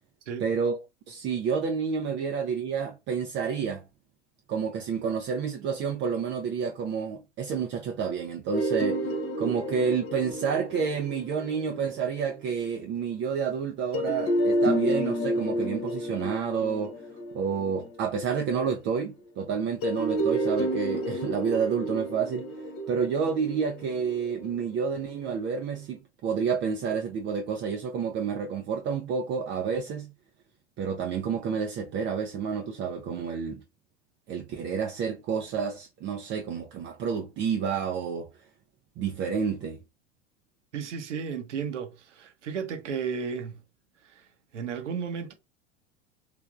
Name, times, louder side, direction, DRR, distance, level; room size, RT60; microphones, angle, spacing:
voice 1, 0.4-0.8 1.1-3.8 4.5-9.0 9.4-16.9 17.3-22.5 22.9-30.1 30.8-33.6 34.3-38.3 39.0-39.8, right 6 dB, 30° right, 0.5 m, -29 dB
sound 1, 8.5-12.4 13.9-18.4 19.8-25.0, equal, 40° left, 1.1 m, -30 dB
voice 2, 40.7-43.6 44.0-44.3 44.5-45.3, right 6 dB, 75° right, 0.9 m, -34 dB
3.3 x 3.2 x 2.3 m
figure-of-eight pair, 80°, 36 cm